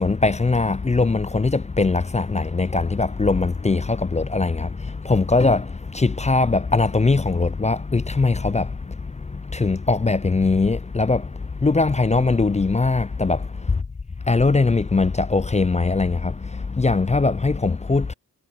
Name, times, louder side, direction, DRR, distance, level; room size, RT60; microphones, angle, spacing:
voice 1, 0.0-13.8 14.3-18.1, left 3 dB, 20° left, 0.4 m, -21 dB
cardioid pair, 50°, 38 cm